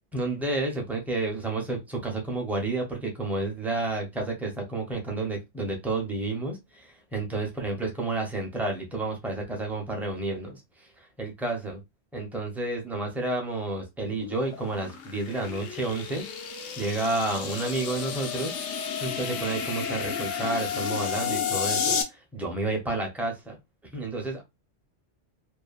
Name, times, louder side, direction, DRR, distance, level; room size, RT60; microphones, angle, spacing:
voice 1, 0.1-10.6 11.2-11.8 12.1-16.2 16.8-18.5 19.0-22.0 22.3-23.6 23.9-24.4, right 2 dB, ahead, 0.5 m, -30 dB
sound 1, 14.1-22.0, left 7 dB, 75° left, 0.9 m, -32 dB
2.7 x 2.2 x 2.3 m
omnidirectional pair, 1.3 m